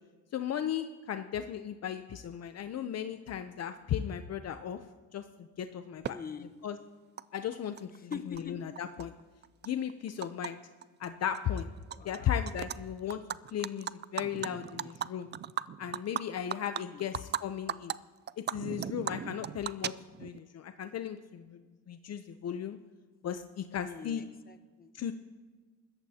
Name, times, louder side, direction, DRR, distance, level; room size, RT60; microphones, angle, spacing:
voice 1, 0.3-4.8 5.1-5.2 5.6-6.2 6.6-6.8 7.3-9.1 9.6-10.6 11.0-11.7 12.0-13.2 13.5-15.3 15.8-17.9 18.5-19.9 20.2-21.6 21.9-22.8 23.2-24.2 24.9-25.1, left 9 dB, 55° left, 9 dB, 0.7 m, -36 dB
Animal, 6.0-6.1 7.2-7.3 7.5-8.4 8.8-10.5 10.8-11.1 11.3-12.2 12.5-12.8 13.1-17.4 17.7-17.9 18.3-20.4, right 9 dB, 35° right, 0.4 m, -37 dB
voice 2, 6.1-6.5 8.1-8.6 11.9-12.4 16.9-17.1 23.8-24.9, left 7 dB, 30° left, 7 dB, 1.1 m, -44 dB
26.0 x 14.0 x 2.9 m, 1.4 s
cardioid pair, 90°, 30 cm